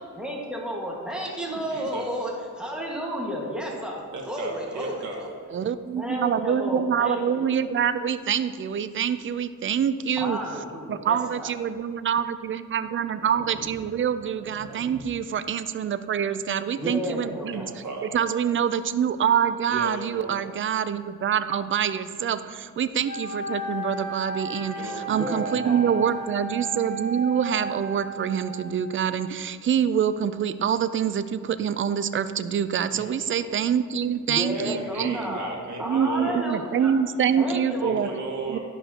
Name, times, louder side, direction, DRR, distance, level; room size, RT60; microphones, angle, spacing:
voice 1, 0.2-4.0 4.3-5.3 6.0-7.5 10.2-11.5 16.8-17.7 25.1-25.9 34.3-35.5 35.8-36.9 37.3-38.1, equal, 5° right, -3 dB, 1.6 m, -32 dB
voice 2, 1.4-2.1 4.1-5.2 17.5-18.2 19.7-20.4 24.7-25.1 25.5-26.0 32.9-33.5 34.5-36.4 37.8-38.6, right 3 dB, 65° right, -1 dB, 1.4 m, -37 dB
voice 3, 5.5-10.4 10.9-17.6 18.1-35.4 35.8-38.1 38.5-38.6, right 8 dB, 40° right, 12 dB, 0.4 m, -26 dB
sound 1, 11.7-11.9 12.6-15.4, right 2 dB, 85° right, 1.0 m, -46 dB
Wind instrument woodwind instrument, 23.0-29.0, right 1 dB, 90° left, 1.0 m, -34 dB
11.5 x 5.4 x 2.9 m, 2.1 s
cardioid pair, 80°, 31 cm